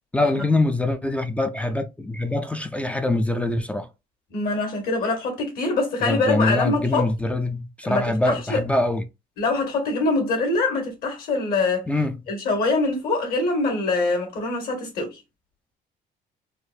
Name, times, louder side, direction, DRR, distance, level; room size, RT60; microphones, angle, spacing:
voice 1, 0.1-3.9 6.0-9.0 11.9-12.2, left 2 dB, 5° left, 0.3 m, -24 dB
voice 2, 4.3-7.1 7.8-8.6 9.4-11.8 12.3-15.2, left 3 dB, 60° left, 1.8 m, -24 dB
4.2 x 2.5 x 2.3 m
cardioid pair, 145°, 17 cm